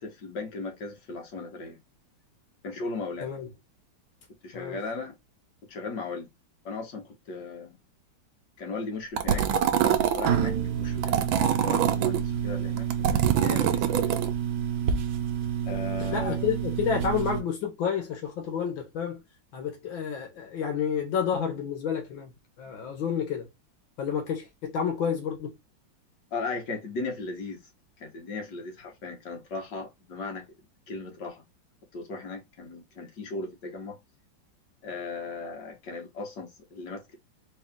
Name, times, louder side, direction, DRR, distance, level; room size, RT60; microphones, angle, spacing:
voice 1, 0.0-1.8 2.6-3.3 4.4-5.2 5.7-6.3 6.7-7.8 8.6-9.5 9.8-11.3 11.6-14.2 15.7-16.5 26.3-27.6 28.0-30.4 30.9-31.4 31.9-34.0 34.8-37.2, left 3 dB, 65° left, 1.9 m, -37 dB
sound 1, 9.2-10.3 11.0-12.2 12.8-14.3, right 9 dB, 85° right, 1.5 m, -24 dB
sound 2, 9.4-17.4, right 8 dB, 65° right, 1.3 m, -29 dB
voice 2, 16.0-19.2 19.5-23.5 24.0-25.6, left 7 dB, 85° left, 1.8 m, -30 dB
4.0 x 2.9 x 3.6 m
omnidirectional pair, 2.1 m